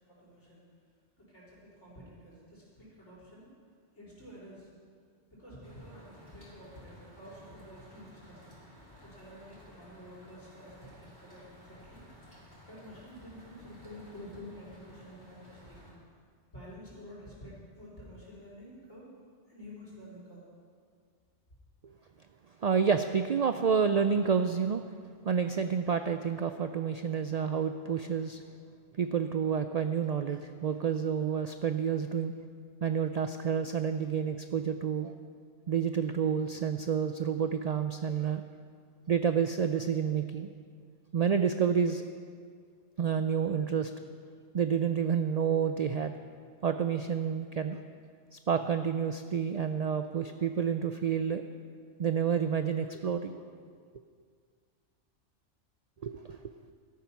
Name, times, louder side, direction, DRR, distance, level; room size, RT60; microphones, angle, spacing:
voice 1, 0.1-0.6 1.2-3.5 4.0-4.7 5.3-8.5 9.0-12.0 12.7-15.9 16.5-19.1 19.5-20.4, equal, 70° left, -6 dB, 4.3 m, -49 dB
sound 1, 5.6-15.9, left 1 dB, 15° left, 4.0 m, -55 dB
voice 2, 22.6-24.8 25.2-28.4 29.0-32.3 32.8-35.1 35.7-38.4 39.1-40.5 41.1-42.0 43.0-43.9 44.5-46.1 46.6-47.8 48.3-51.5 52.0-53.4 56.0-56.4, right 7 dB, 75° right, 8 dB, 0.3 m, -29 dB
13.0 x 9.4 x 5.9 m, 2.1 s
omnidirectional pair, 1.2 m